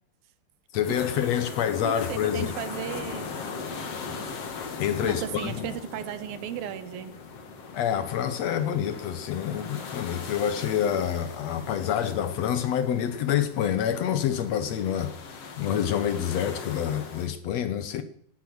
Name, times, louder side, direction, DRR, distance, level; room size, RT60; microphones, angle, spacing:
voice 1, 0.7-2.5 4.8-5.7 7.7-18.0, left 9 dB, 70° left, 1.6 m, -27 dB
sound 1, 0.7-17.3, left 5 dB, 45° left, 2.7 m, -39 dB
voice 2, 1.8-3.3 5.0-7.2, right 11 dB, 75° right, 2.7 m, -35 dB
17.5 x 12.5 x 6.5 m
omnidirectional pair, 4.4 m